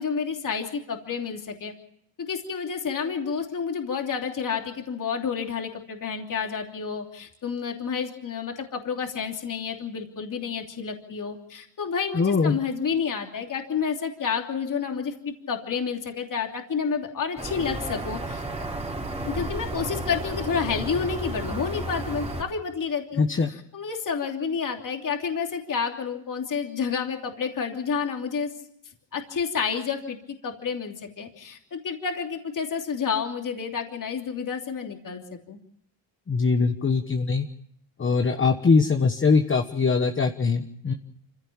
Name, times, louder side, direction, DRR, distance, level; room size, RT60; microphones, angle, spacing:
voice 1, 0.0-1.7 2.2-18.4 19.3-28.5 29.1-30.2 30.4-35.6, left 6 dB, 45° left, 3 dB, 3.1 m, -30 dB
voice 2, 12.1-12.6 23.2-23.5 36.3-37.5 38.0-40.9, left 4 dB, 30° left, 6 dB, 1.2 m, -22 dB
sound 1, 17.4-22.4, right 1 dB, 15° right, 3.0 m, -32 dB
26.0 x 16.0 x 7.3 m, 0.72 s
cardioid pair, 105°, 44 cm